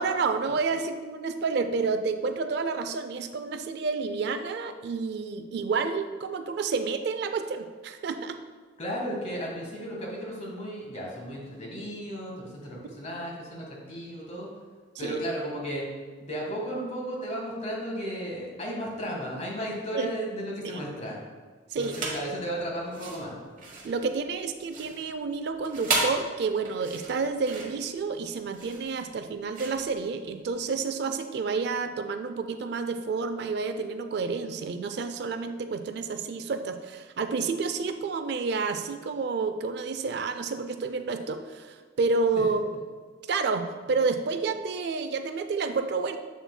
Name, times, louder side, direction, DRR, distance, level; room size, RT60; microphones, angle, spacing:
voice 1, 0.0-8.4 12.8-12.9 15.0-15.2 19.9-20.1 20.7-20.8 21.7-22.0 23.8-42.6 43.3-46.2, right 4 dB, 60° right, 9 dB, 0.3 m, -29 dB
voice 2, 8.8-14.5 15.0-15.9 16.2-21.2 21.7-23.4 42.3-42.4, equal, 35° left, -2 dB, 1.5 m, -34 dB
sound 1, 21.8-22.3 22.8-30.7, right 3 dB, 45° right, 1.1 m, -34 dB
7.2 x 7.0 x 2.2 m, 1.5 s
head